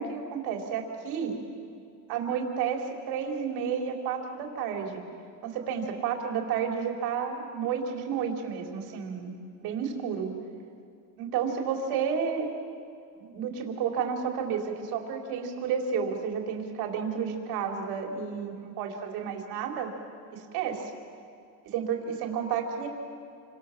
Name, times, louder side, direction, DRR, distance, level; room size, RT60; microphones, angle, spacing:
voice 1, 0.0-1.4 2.1-5.0 5.4-9.3 9.6-10.3 11.2-12.5 13.2-19.9 20.3-20.9 21.7-22.9, right 7 dB, 85° right, 2 dB, 4.1 m, -31 dB
29.5 x 25.0 x 7.5 m, 2.4 s
cardioid pair, 155°, 37 cm